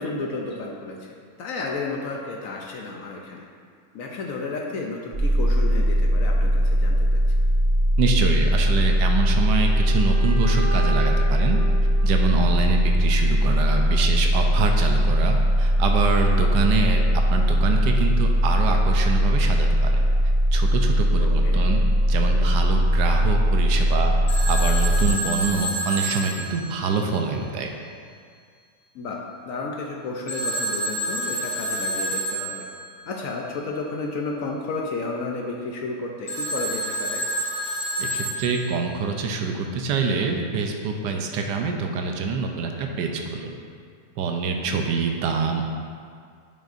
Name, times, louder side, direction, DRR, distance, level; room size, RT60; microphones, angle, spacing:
voice 1, 0.0-3.5 3.9-7.2 21.2-21.7 28.9-32.7 33.1-37.2 44.6-44.9, left 3 dB, 65° left, 0 dB, 0.9 m, -32 dB
sound 1, 5.1-25.1, equal, 30° right, 1.4 m, -20 dB
voice 2, 8.0-11.6 12.0-17.0 17.3-20.0 20.5-21.8 22.1-24.1 24.5-27.7 38.0-43.5 44.2-45.7, right 4 dB, 85° right, 3 dB, 1.3 m, -25 dB
sound 2, 8.7-12.7, right 3 dB, 55° right, 1.5 m, -36 dB
Telephone, 24.3-27.4 30.3-32.8 36.3-38.9, right 1 dB, 35° left, 2.1 m, -29 dB
11.0 x 5.4 x 2.6 m, 2.1 s
omnidirectional pair, 1.8 m